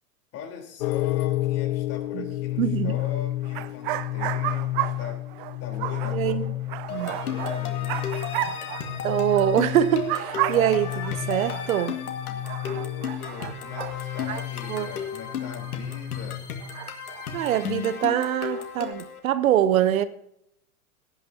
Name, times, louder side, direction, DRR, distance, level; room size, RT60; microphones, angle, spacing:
voice 1, 0.3-5.3 5.6-8.1 12.6-16.5, left 7 dB, 35° left, 4.0 m, -41 dB
sound 1, 0.8-16.7, left 16 dB, 60° left, 0.7 m, -31 dB
voice 2, 2.6-3.0 6.1-6.5 6.9-7.1 9.0-12.0 14.3-14.4 14.7-14.9 17.3-20.0, right 11 dB, 65° right, 0.9 m, -24 dB
sound 2, 3.0-3.1 3.4-9.6 9.8-12.0 12.4-16.3 16.6-18.9, right 16 dB, 35° right, 0.6 m, -34 dB
sound 3, 6.9-19.2, left 7 dB, 80° left, 2.1 m, -35 dB
17.5 x 11.5 x 2.9 m
hypercardioid pair, 115°, 44 cm